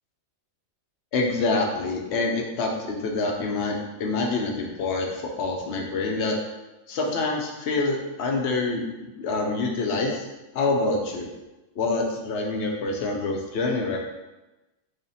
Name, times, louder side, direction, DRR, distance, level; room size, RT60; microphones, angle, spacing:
voice 1, 1.1-6.4 6.9-10.3 10.5-11.3 11.8-14.0, left 3 dB, 65° left, 0 dB, 0.7 m, -26 dB
3.3 x 2.1 x 4.0 m, 1.1 s
omnidirectional pair, 1.4 m